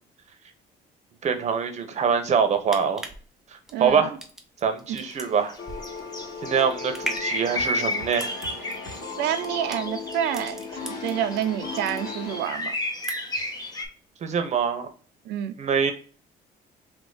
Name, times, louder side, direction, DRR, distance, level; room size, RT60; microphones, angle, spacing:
voice 1, 1.2-3.0 3.8-4.1 4.6-5.5 6.4-8.3 14.2-14.9 15.6-15.9, right 6 dB, 45° right, 0.9 m, -24 dB
sound 1, 2.6-11.4 11.7-12.5 12.8-13.5 13.8-13.9, right 1 dB, 5° right, 0.7 m, -38 dB
voice 2, 3.7-4.1 9.2-12.7 15.2-15.5, right 10 dB, 80° right, 0.6 m, -28 dB
sound 2, 4.9-5.2 5.5-13.8, left 2 dB, 25° left, 1.0 m, -33 dB
sound 3, 5.6-12.4, left 4 dB, 55° left, 2.2 m, -37 dB
3.6 x 2.9 x 3.9 m
cardioid pair, 110°, 17 cm